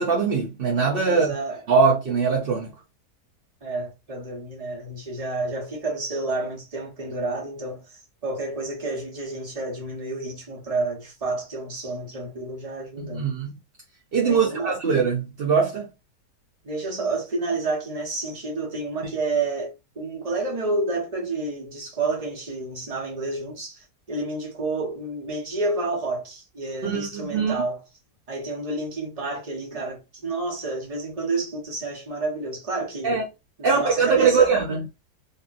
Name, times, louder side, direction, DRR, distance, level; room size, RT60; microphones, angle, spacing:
voice 1, 0.0-1.3 1.7-2.7 13.0-13.5 14.1-15.9 26.8-27.6 33.0-33.2 33.6-34.8, right 5 dB, 60° right, 0.6 m, -22 dB
voice 2, 1.0-1.6 3.6-7.8 8.2-13.3 14.3-14.8 16.6-27.8 28.3-33.2 33.6-34.6, right 3 dB, 25° right, 0.9 m, -30 dB
2.8 x 2.7 x 2.5 m
omnidirectional pair, 1.8 m